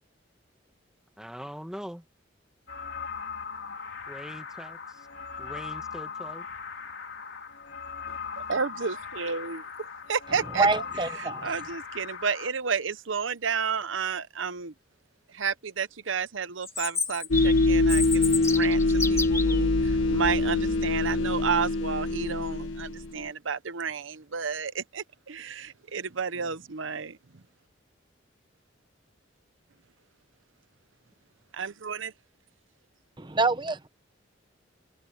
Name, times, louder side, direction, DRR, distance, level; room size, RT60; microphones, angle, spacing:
voice 1, 1.2-2.0 4.1-5.1 5.4-6.4, equal, 5° right, 1.5 m, -42 dB
sound 1, 2.7-12.5, left 6 dB, 65° left, 3.4 m, -39 dB
voice 2, 8.4-9.6 10.1-10.7 11.2-14.7 15.3-27.4 31.5-32.1, right 6 dB, 80° right, 0.9 m, -31 dB
voice 3, 10.5-11.5 33.2-33.9, right 3 dB, 25° right, 1.0 m, -26 dB
Chirp tweet, 16.6-19.6, left 4 dB, 15° left, 2.4 m, -31 dB
sound 2, 17.3-23.2, left 2 dB, 80° left, 1.0 m, -24 dB
head